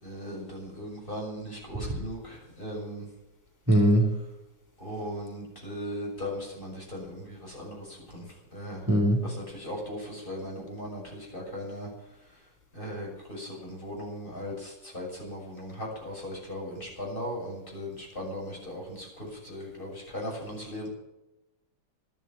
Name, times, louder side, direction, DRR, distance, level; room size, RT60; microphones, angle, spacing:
voice 1, 0.0-3.1 4.8-8.2 8.5-8.8 9.2-11.9 12.7-20.9, equal, 25° left, -2 dB, 7.2 m, -38 dB
voice 2, 3.7-4.1 8.9-9.2, right 1 dB, 10° right, 2 dB, 2.1 m, -20 dB
13.0 x 11.0 x 8.9 m, 0.96 s
omnidirectional pair, 2.1 m